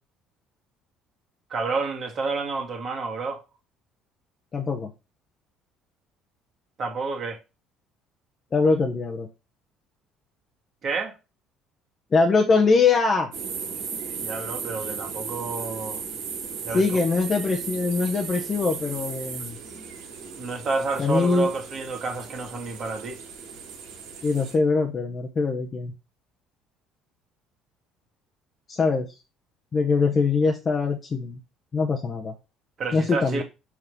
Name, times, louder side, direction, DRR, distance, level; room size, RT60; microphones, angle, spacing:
voice 1, 1.5-3.4 6.8-7.4 10.8-11.1 14.2-16.0 16.6-17.0 20.4-23.2 32.8-33.4, right 3 dB, 45° right, 1.7 m, -29 dB
voice 2, 4.5-4.9 8.5-9.3 12.1-13.3 16.7-19.6 21.0-21.5 24.2-25.9 28.7-29.1 29.7-31.4 31.7-32.3 32.9-33.4, left 4 dB, 40° left, 1.1 m, -22 dB
sound 1, 13.3-24.6, right 6 dB, 70° right, 1.8 m, -36 dB
6.1 x 3.1 x 5.3 m
hypercardioid pair, 60°, 0 cm